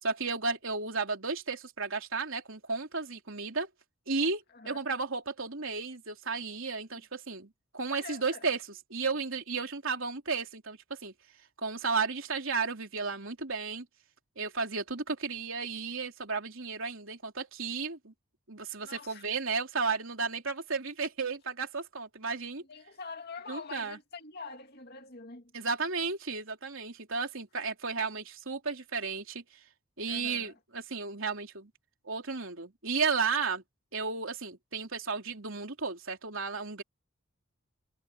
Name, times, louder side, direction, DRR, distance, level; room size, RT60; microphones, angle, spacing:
voice 1, 0.0-3.7 4.1-8.6 8.9-11.1 11.6-13.9 14.4-18.1 18.5-22.6 23.5-24.0 25.5-29.4 30.0-31.7 32.0-33.6 33.9-36.8, right 4 dB, 70° right, 3.4 m, -33 dB
voice 2, 4.5-4.8 6.9-7.0 7.9-8.5 18.8-19.3 22.6-25.5 30.1-30.5, left 4 dB, 50° left, 2.3 m, -45 dB
head